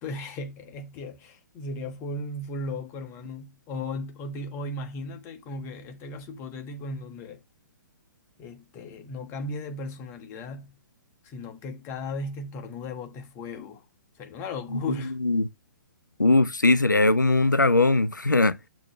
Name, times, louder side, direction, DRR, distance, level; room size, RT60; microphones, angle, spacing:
voice 1, 0.0-7.4 8.4-10.8 11.2-13.8 14.2-15.1, left 2 dB, 20° left, 1.2 m, -36 dB
voice 2, 14.7-15.5 16.2-18.6, left 2 dB, 85° left, 0.5 m, -21 dB
6.7 x 3.1 x 5.5 m
figure-of-eight pair, 120°, 10 cm